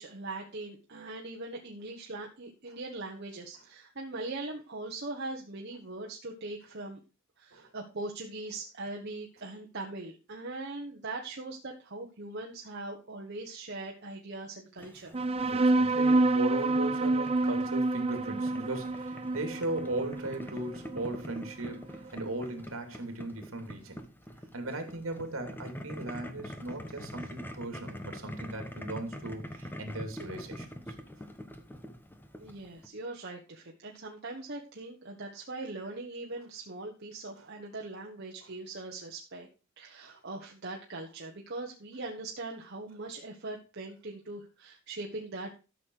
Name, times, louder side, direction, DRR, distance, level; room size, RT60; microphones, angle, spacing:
voice 1, 0.0-7.0 7.4-15.1 32.4-39.5 39.8-45.5, right 2 dB, 50° right, 0 dB, 1.4 m, -41 dB
Boiling, 14.8-32.9, equal, 10° left, 1.1 m, -45 dB
sound 1, 15.1-22.1, right 2 dB, 30° right, 0.7 m, -28 dB
voice 2, 15.4-24.0 24.5-30.8 38.4-38.5, right 2 dB, 65° right, 5 dB, 2.9 m, -37 dB
12.5 x 6.7 x 4.7 m, 0.33 s
head